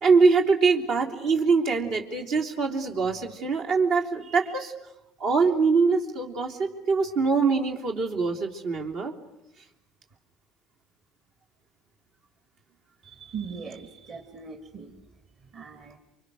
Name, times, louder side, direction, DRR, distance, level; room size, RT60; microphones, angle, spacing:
voice 1, 0.0-4.7 5.2-9.1, right 4 dB, 70° right, 0 dB, 3.4 m, -23 dB
voice 2, 13.0-14.9 15.5-16.0, right 6 dB, 45° right, 5 dB, 2.8 m, -40 dB
28.5 x 24.0 x 6.6 m, 0.86 s
supercardioid pair, 95°, 0 cm